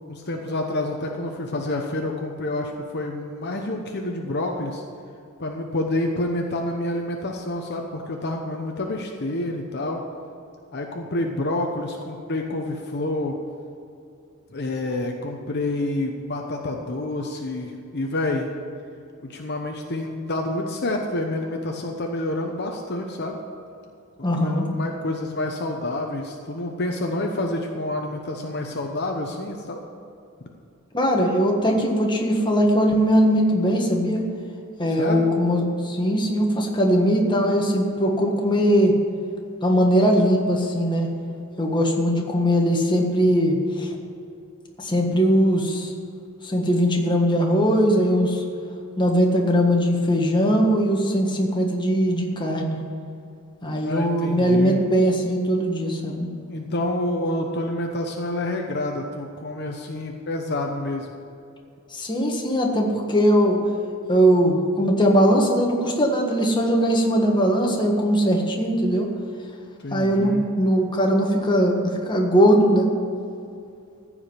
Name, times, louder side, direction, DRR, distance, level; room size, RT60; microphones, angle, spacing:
voice 1, 0.1-4.8 5.4-10.0 10.7-13.4 14.5-18.5 19.2-23.4 24.4-29.8 35.0-35.3 53.8-54.8 56.5-61.1 69.8-70.5, left 1 dB, 50° left, 2 dB, 0.9 m, -28 dB
voice 2, 24.2-24.7 30.9-34.2 34.8-38.9 39.6-41.1 41.6-43.9 44.8-45.9 46.4-48.4 49.0-52.8 53.6-56.3 61.9-63.6 64.1-69.1 69.9-72.9, equal, 20° left, 0 dB, 1.5 m, -20 dB
15.0 x 5.0 x 8.9 m, 2.5 s
head